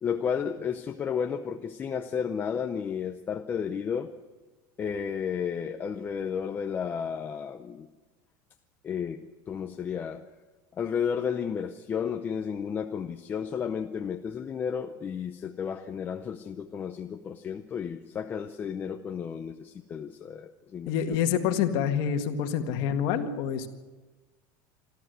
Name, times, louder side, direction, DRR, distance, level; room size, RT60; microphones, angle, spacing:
voice 1, 0.0-4.1 4.8-7.9 8.8-10.2 10.8-21.2, left 7 dB, 20° left, 5 dB, 0.7 m, -32 dB
voice 2, 20.9-23.7, left 8 dB, 50° left, 6 dB, 1.9 m, -27 dB
26.0 x 13.5 x 8.1 m, 1.2 s
cardioid pair, 170°, 10 cm